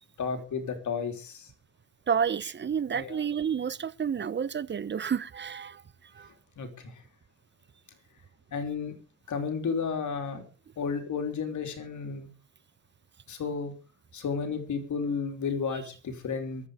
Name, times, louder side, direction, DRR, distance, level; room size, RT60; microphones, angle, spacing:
voice 1, 0.2-1.5 2.9-3.2 6.6-6.9 8.5-8.9 9.3-10.4 10.8-12.3 13.3-13.7 14.1-16.7, left 5 dB, 65° left, 3.4 m, -32 dB
voice 2, 2.1-5.8 6.2-6.3, right 7 dB, 35° right, 0.9 m, -30 dB
23.0 x 8.2 x 5.0 m
cardioid pair, 115°, 31 cm